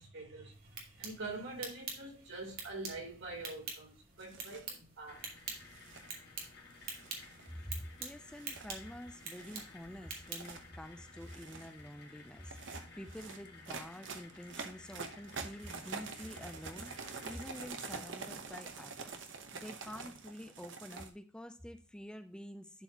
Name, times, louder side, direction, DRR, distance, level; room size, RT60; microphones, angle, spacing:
voice 1, 0.0-5.3, right 2 dB, 90° right, 3.7 m, -45 dB
sound 1, 0.5-10.7, right 5 dB, 50° right, 2.0 m, -47 dB
sound 2, 4.2-4.7 5.6-6.1 6.8-7.6 8.3-8.7 9.2-9.6 10.2-10.6 11.1-11.7 12.4-21.1, right 5 dB, 70° right, 1.0 m, -46 dB
sound 3, 5.1-17.7, left 3 dB, 60° left, 1.7 m, -56 dB
voice 2, 7.5-22.8, equal, 5° left, 0.4 m, -48 dB
11.5 x 4.5 x 2.9 m
head